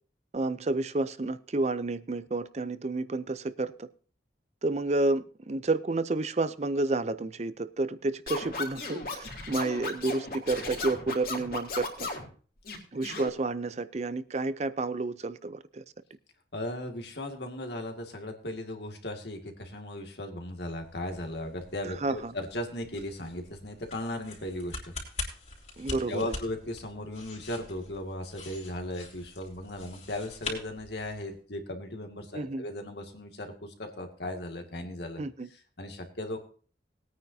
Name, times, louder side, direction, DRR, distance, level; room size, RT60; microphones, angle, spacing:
voice 1, 0.3-3.9 4.6-12.1 12.9-15.8 22.0-22.3 25.8-26.3 32.3-32.6 35.2-35.5, right 2 dB, 40° right, 14 dB, 0.5 m, -30 dB
Scratching (performance technique), 8.3-12.3 12.6-13.3, left 3 dB, 55° left, 3.2 m, -36 dB
voice 2, 16.5-24.9 25.9-35.2 35.5-36.4, left 1 dB, 75° left, 4 dB, 2.1 m, -37 dB
sound 1, 20.6-31.4, left 3 dB, 40° left, 3.8 m, -44 dB
20.5 x 9.4 x 2.7 m, 0.41 s
head